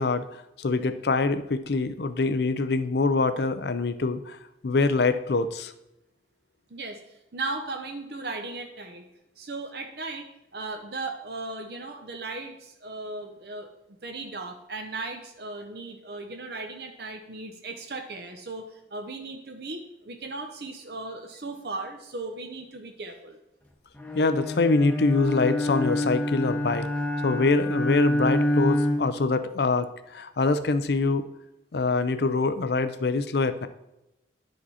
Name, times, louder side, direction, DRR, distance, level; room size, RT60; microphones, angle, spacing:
voice 1, 0.0-4.4 4.6-5.7 24.1-26.9 27.2-31.2 31.7-33.7, left 3 dB, 60° left, 11 dB, 0.5 m, -24 dB
voice 2, 6.7-9.0 9.4-13.7 14.0-23.4, right 3 dB, 60° right, 4 dB, 0.8 m, -37 dB
Bowed string instrument, 24.0-29.3, left 1 dB, 10° left, 0.8 m, -27 dB
10.5 x 5.0 x 4.2 m, 0.91 s
head